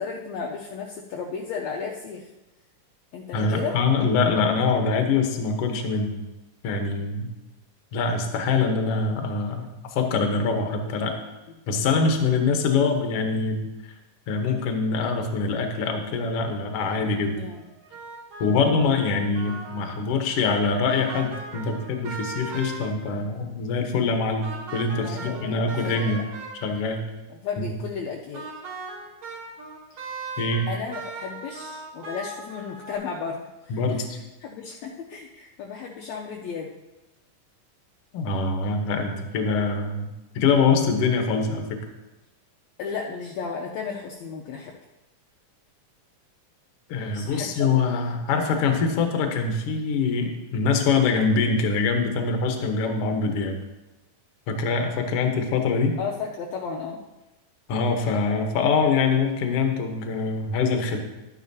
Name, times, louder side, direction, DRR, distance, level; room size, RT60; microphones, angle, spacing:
voice 1, 0.0-2.3 3.1-3.8 11.7-11.8 17.4-17.7 24.9-26.2 27.4-28.5 30.7-34.0 34.4-36.7 42.8-44.7 47.1-47.8 56.0-57.0, left 5 dB, 75° left, 0 dB, 1.7 m, -34 dB
voice 2, 3.3-6.2 6.6-7.3 7.9-11.1 11.7-13.9 14.3-17.4 18.4-26.2 26.6-27.0 27.6-27.7 30.4-30.7 33.7-34.2 38.1-41.6 46.9-53.6 54.5-56.0 57.7-61.0, left 4 dB, 60° left, 4 dB, 1.6 m, -24 dB
sound 1, 17.5-20.2 20.9-23.2 24.4-26.8 28.3-33.0, right 4 dB, 85° right, 3.5 m, -38 dB
12.0 x 9.8 x 2.8 m, 1.0 s
omnidirectional pair, 3.8 m